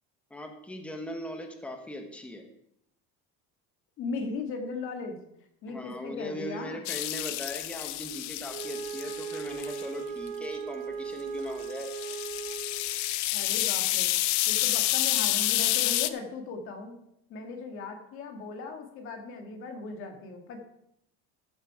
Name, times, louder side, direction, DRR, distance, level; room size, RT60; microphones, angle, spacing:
voice 1, 0.3-2.4 5.7-11.9, left 1 dB, 5° left, 4 dB, 1.2 m, -39 dB
voice 2, 4.0-5.2 5.6-6.8 13.3-14.1 14.5-17.0 17.3-20.6, left 4 dB, 45° left, 4 dB, 2.0 m, -38 dB
sound 1, 6.9-9.9 11.6-16.1, left 16 dB, 70° left, 0.7 m, -29 dB
Wind instrument woodwind instrument, 8.5-13.1, right 6 dB, 70° right, 1.0 m, -38 dB
14.0 x 6.6 x 4.8 m, 0.77 s
cardioid pair, 160°, 29 cm